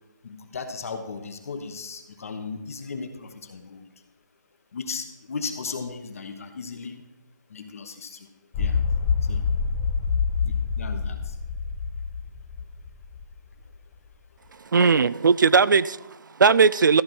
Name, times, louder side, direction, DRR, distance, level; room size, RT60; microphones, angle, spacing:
voice 1, 0.2-3.9 4.7-7.0 7.5-8.3 8.6-8.8 9.3-9.4 10.4-11.3, left 4 dB, 45° left, 1.2 m, -36 dB
sound 1, 8.5-13.3 13.5-13.6, left 5 dB, 10° left, 0.3 m, -26 dB
voice 2, 14.7-17.0, right 5 dB, 80° right, 0.4 m, -18 dB
13.5 x 5.2 x 6.1 m
hypercardioid pair, 165°, 10 cm